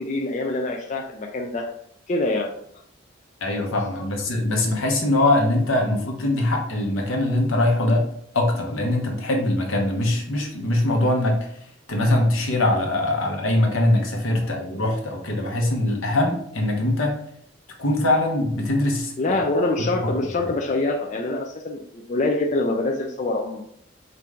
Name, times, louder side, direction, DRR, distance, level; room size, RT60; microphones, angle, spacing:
voice 1, 0.0-1.7 2.1-2.5 4.0-4.1 19.2-23.6, left 2 dB, 35° left, 1 dB, 0.3 m, -25 dB
voice 2, 3.4-8.0 8.3-11.4 11.9-17.2 17.8-19.4 20.4-20.5, left 1 dB, 80° left, 1 dB, 0.9 m, -22 dB
4.4 x 2.6 x 3.4 m, 0.68 s
head